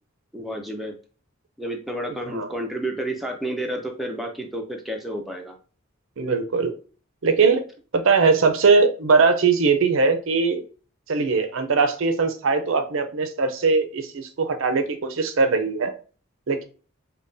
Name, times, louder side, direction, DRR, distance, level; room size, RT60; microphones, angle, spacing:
voice 1, 0.3-0.9 1.6-5.5, right 1 dB, ahead, 1 dB, 0.4 m, -30 dB
voice 2, 6.2-6.7 7.2-7.6 7.9-10.6 11.1-15.9 16.5-16.6, right 4 dB, 65° right, 8 dB, 0.5 m, -20 dB
5.2 x 2.2 x 2.6 m, 0.37 s
head